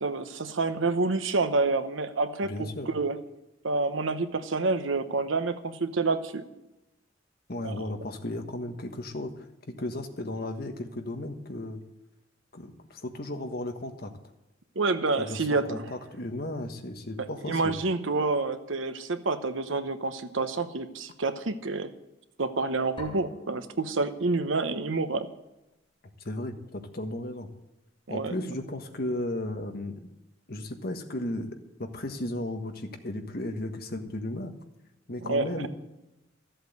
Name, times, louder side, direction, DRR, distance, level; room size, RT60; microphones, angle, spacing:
voice 1, 0.0-3.2 3.6-6.4 7.6-7.8 14.8-15.8 17.2-21.9 22.4-25.3 28.1-28.3 35.2-35.7, right 3 dB, 85° right, 10 dB, 1.0 m, -28 dB
voice 2, 2.4-2.9 7.5-11.8 12.5-14.1 15.2-17.8 26.2-27.5 28.1-30.0 30.5-31.5 31.8-34.5 35.1-35.7, left 1 dB, 55° left, 5 dB, 1.4 m, -35 dB
sound 1, 23.0-24.8, left 1 dB, 25° left, 2.4 m, -47 dB
14.0 x 7.9 x 8.1 m, 0.94 s
head